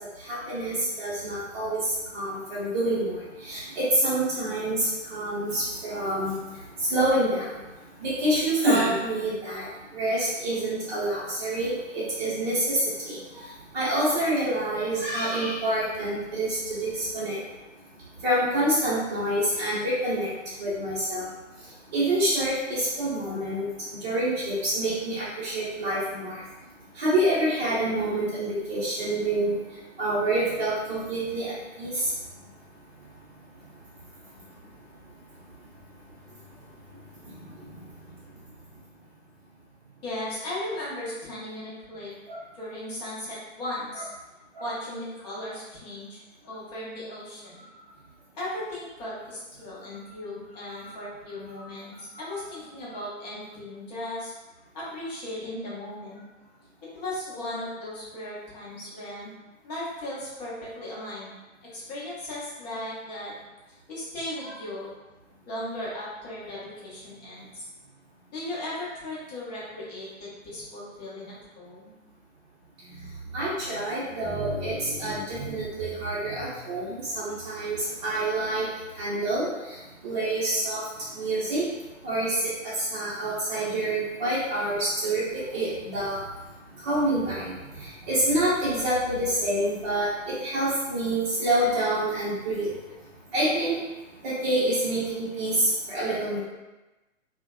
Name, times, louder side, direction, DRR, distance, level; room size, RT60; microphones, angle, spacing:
voice 1, 0.3-1.8 2.1-3.1 3.4-6.3 6.9-7.4 8.0-9.7 9.9-13.2 13.7-17.4 18.2-20.3 20.6-21.3 21.9-23.7 24.0-26.4 27.0-29.6 30.0-32.0 43.9-44.0 44.6-44.7 64.4-64.5 73.3-77.8 78.0-78.7 79.0-79.5 80.0-80.8 81.2-81.6 82.0-82.5 82.8-85.2 85.5-86.2 86.8-87.5 87.8-90.1 90.4-92.7 93.3-93.8 94.2-96.4, right 1 dB, 30° right, -11 dB, 0.6 m, -27 dB
voice 2, 40.0-42.1 42.5-44.1 44.6-46.2 46.4-47.6 48.3-54.3 54.7-56.2 56.9-59.3 59.6-61.3 61.6-63.3 63.9-64.9 65.5-67.7 68.3-71.9, left 1 dB, 30° left, -7 dB, 0.8 m, -37 dB
2.7 x 2.1 x 2.3 m, 1.1 s
figure-of-eight pair, 130°, 39 cm